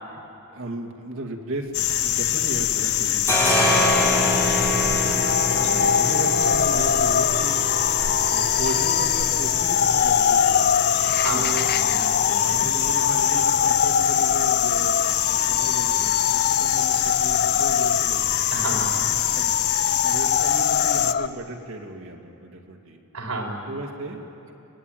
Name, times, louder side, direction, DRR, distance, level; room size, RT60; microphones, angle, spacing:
voice 1, 0.5-1.7 2.0-5.3 6.0-7.6 8.3-10.7 11.3-12.0 12.5-18.4 19.3-19.5 20.0-23.0 23.7-24.5, right 1 dB, 60° right, 3 dB, 2.3 m, -35 dB
sound 1, 1.7-21.1, left 11 dB, 75° left, 0.9 m, -24 dB
sound 2, 1.7-2.6 2.9-20.4, equal, 10° left, 4.1 m, -30 dB
sound 3, 5.1-21.3, left 6 dB, 45° left, 0.5 m, -25 dB
voice 2, 5.5-5.9 11.2-11.5 11.7-12.0 12.3-12.6 18.5-19.1 23.1-23.7, right 2 dB, 75° right, 0 dB, 4.8 m, -31 dB
24.0 x 19.5 x 9.3 m, 2.8 s
head